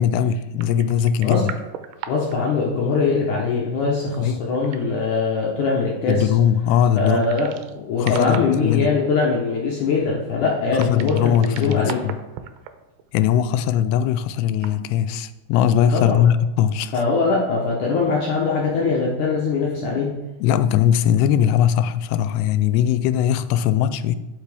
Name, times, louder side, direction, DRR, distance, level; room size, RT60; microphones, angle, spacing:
voice 1, 0.0-1.5 4.2-4.5 6.1-7.3 8.0-8.9 10.4-12.2 13.1-16.9 20.4-24.2, left 9 dB, 85° left, 13 dB, 2.6 m, -20 dB
sound 1, 0.6-2.4 2.7-2.8 3.9-5.0 6.9-7.8 8.0-8.8 10.7-12.7 13.0-13.1 14.5-14.8, right 9 dB, 85° right, 2.4 m, -37 dB
voice 2, 2.1-6.2 7.0-12.0 15.9-16.2 16.9-20.1, left 4 dB, 70° left, -3 dB, 2.1 m, -22 dB
12.0 x 5.9 x 3.5 m, 1.0 s
omnidirectional pair, 4.7 m